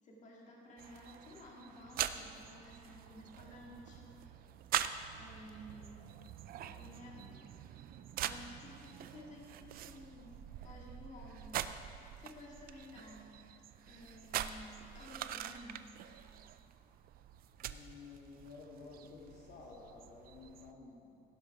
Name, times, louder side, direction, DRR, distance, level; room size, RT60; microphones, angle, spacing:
voice 1, 0.0-4.1 5.1-6.0 6.8-7.2 8.2-10.3 10.6-11.6 12.2-13.4 13.9-15.9, left 1 dB, 45° left, -2 dB, 1.9 m, -53 dB
sound 1, 0.8-20.7, right 11 dB, 60° right, 0.5 m, -44 dB
voice 2, 6.6-7.3 17.6-21.2, left 4 dB, 80° left, -2 dB, 2.0 m, -54 dB
16.5 x 6.1 x 4.9 m, 2.6 s
cardioid pair, 110°, 17 cm